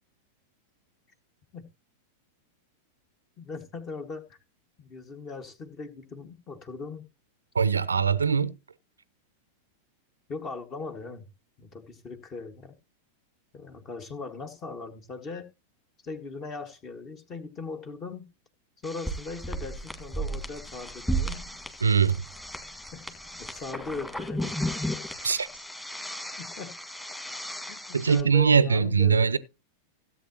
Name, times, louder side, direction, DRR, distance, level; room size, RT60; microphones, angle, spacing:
voice 1, 3.4-4.4 4.8-7.1 10.3-11.3 11.6-12.8 13.5-15.5 16.0-18.2 18.8-21.4 22.9-24.5 26.4-26.7 27.7-29.3, left 4 dB, 30° left, 1.7 m, -39 dB
voice 2, 7.5-8.5 21.8-22.2 25.2-25.5 27.9-29.4, right 6 dB, 75° right, 0.6 m, -22 dB
sound 1, 18.8-28.2, right 1 dB, 5° left, 1.9 m, -35 dB
16.5 x 8.4 x 2.9 m
figure-of-eight pair, 90°, 0 cm